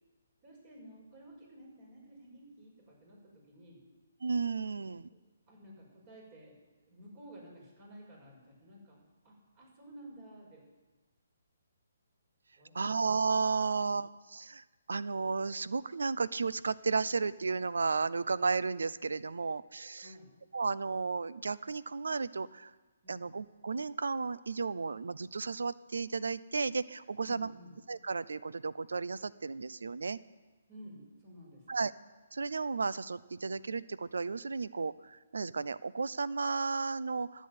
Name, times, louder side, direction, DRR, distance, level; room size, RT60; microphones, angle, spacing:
voice 1, 0.4-3.8 5.5-6.6 6.9-10.6 12.6-12.9 20.0-20.3 23.0-23.3 27.2-27.7 30.7-31.8, equal, 35° right, -1 dB, 5.8 m, -53 dB
voice 2, 4.2-5.1 12.7-20.1 20.5-22.7 23.1-27.5 27.9-30.2 31.7-31.9 32.3-37.5, right 4 dB, 80° right, 17 dB, 0.6 m, -33 dB
12.5 x 8.4 x 9.3 m, 1.3 s
hypercardioid pair, 145°, 0 cm